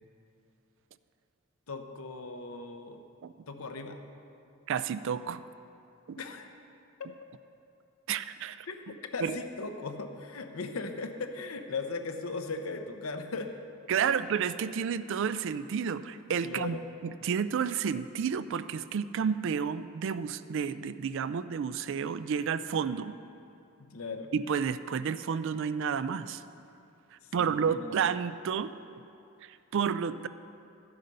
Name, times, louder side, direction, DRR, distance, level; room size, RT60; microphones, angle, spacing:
voice 1, 1.7-3.0 3.5-4.0 6.2-6.5 8.7-8.8 9.1-13.5 14.0-14.2 16.4-16.9 23.8-24.3 27.2-28.0, left 3 dB, 85° left, 6 dB, 0.8 m, -38 dB
voice 2, 4.7-5.4 6.1-6.2 8.1-8.7 9.2-9.4 13.9-16.8 17.0-23.1 24.3-26.4 27.3-28.7 29.5-30.3, right 7 dB, 65° right, 13 dB, 0.4 m, -31 dB
12.0 x 7.9 x 5.3 m, 2.7 s
head